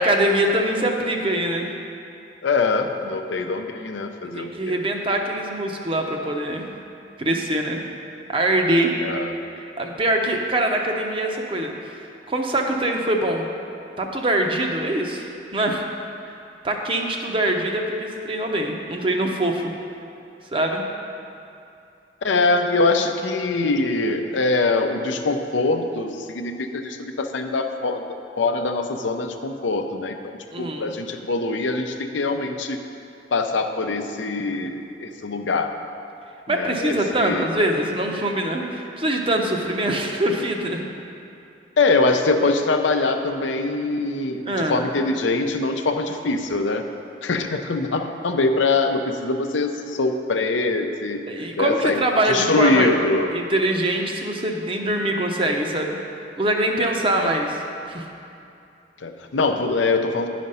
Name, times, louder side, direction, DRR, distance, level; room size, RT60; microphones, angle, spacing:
voice 1, 0.0-1.7 4.3-6.7 7.2-7.8 8.3-8.9 9.8-12.0 12.3-13.5 14.0-15.9 16.6-19.7 20.5-20.8 30.5-30.9 36.5-40.9 44.5-44.9 51.3-52.9 53.3-56.0 56.4-57.6 57.9-58.1, right 1 dB, 30° right, 2 dB, 0.7 m, -23 dB
voice 2, 2.4-4.8 9.0-9.4 22.2-28.0 28.4-32.8 33.3-35.7 36.5-37.5 41.8-46.8 47.2-51.2 51.6-52.0 52.3-53.3 57.1-57.4 59.0-60.3, left 3 dB, 85° left, 6 dB, 0.6 m, -23 dB
10.5 x 5.1 x 5.5 m, 2.6 s
head